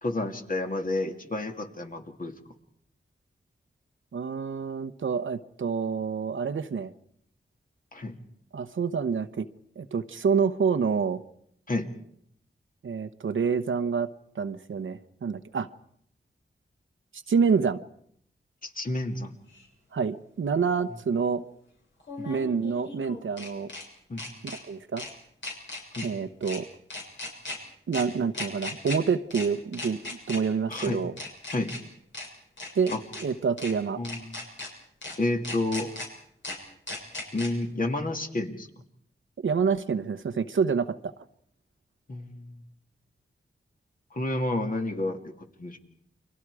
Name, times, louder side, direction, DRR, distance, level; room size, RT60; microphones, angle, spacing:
voice 1, 0.0-2.3 7.9-8.2 11.7-11.9 18.6-19.3 22.2-22.3 24.1-24.2 25.9-26.1 30.7-31.0 31.5-31.7 32.9-33.0 34.0-34.4 35.2-35.9 37.3-38.7 42.1-42.6 44.1-45.8, left 2 dB, 45° left, 4 dB, 2.6 m, -30 dB
voice 2, 4.1-6.9 8.5-9.5 9.8-11.2 12.8-14.1 14.3-15.7 17.1-17.8 19.9-21.4 22.3-23.7 24.4-25.1 26.0-26.7 27.9-31.1 32.7-32.9 33.2-34.0 39.4-41.1, right 6 dB, 80° right, 10 dB, 1.0 m, -27 dB
sound 1, 19.5-19.6 22.0-23.8 24.2-24.6 25.0-25.1 25.4-26.1 26.4-26.6 26.9-27.6 27.9-28.0 28.3-29.0 29.3-29.5 29.7-30.4 30.7-30.9 31.2-31.8 32.1-32.3 32.6-33.2 33.6-33.7 34.0-34.7 35.0-35.1 35.4-36.1 36.4-36.6 36.9-37.5, left 2 dB, 65° left, 7.0 m, -37 dB
30.0 x 23.5 x 4.9 m, 0.68 s
wide cardioid pair, 75°, 20 cm